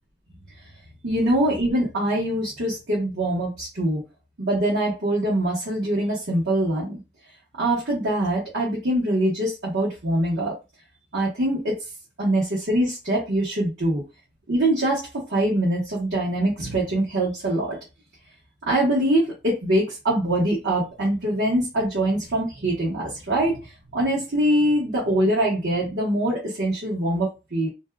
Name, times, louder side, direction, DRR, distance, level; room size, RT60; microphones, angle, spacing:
voice 1, 1.0-4.0 4.4-7.0 7.6-10.5 11.1-11.8 12.2-14.0 14.5-17.8 18.7-23.7 23.9-27.7, right 1 dB, 70° right, -6 dB, 1.2 m, -23 dB
2.6 x 2.3 x 3.4 m, 0.26 s
head